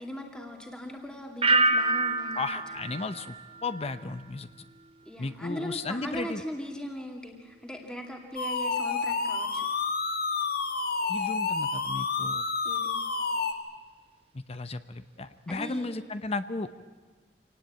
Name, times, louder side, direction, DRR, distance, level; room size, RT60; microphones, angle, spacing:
voice 1, 0.0-2.5 2.7-3.1 5.1-9.6 12.6-13.0 15.5-16.0, equal, 5° left, 2 dB, 2.3 m, -39 dB
sound 1, 1.4-4.3 4.6-5.1, right 2 dB, 35° right, 1.2 m, -28 dB
voice 2, 2.4-3.4 3.6-4.5 5.2-6.4 11.1-12.4 14.5-16.8, left 3 dB, 35° left, 11 dB, 0.7 m, -34 dB
sound 2, 8.4-13.5, left 4 dB, 60° left, 1.7 m, -29 dB
26.0 x 18.5 x 8.7 m, 1.4 s
head